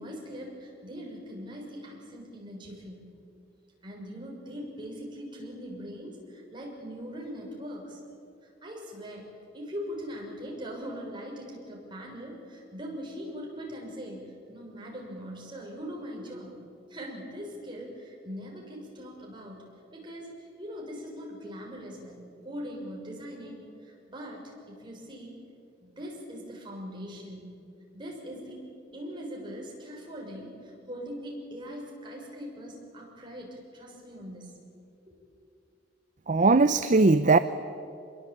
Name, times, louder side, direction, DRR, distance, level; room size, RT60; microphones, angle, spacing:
voice 1, 0.0-3.1 3.8-8.0 8.6-16.6 16.9-22.2 22.4-25.3 25.8-27.5 27.9-34.5 35.1-35.2, equal, 25° right, -2 dB, 6.5 m, -41 dB
voice 2, 36.3-37.4, right 3 dB, 40° right, 12 dB, 0.6 m, -20 dB
25.5 x 22.5 x 8.7 m, 2.5 s
head